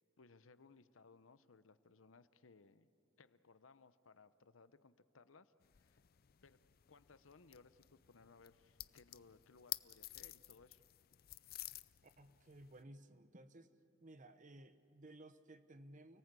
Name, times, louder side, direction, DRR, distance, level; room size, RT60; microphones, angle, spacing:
voice 1, 0.2-2.9 3.2-6.0 6.4-6.6 6.9-10.8, left 4 dB, 80° left, 13 dB, 0.9 m, -64 dB
sound 1, 5.6-12.8, left 16 dB, 50° left, 0.5 m, -52 dB
voice 2, 12.0-13.7 14.0-16.2, right 1 dB, 40° right, 10 dB, 1.0 m, -58 dB
29.5 x 18.5 x 8.3 m, 2.9 s
head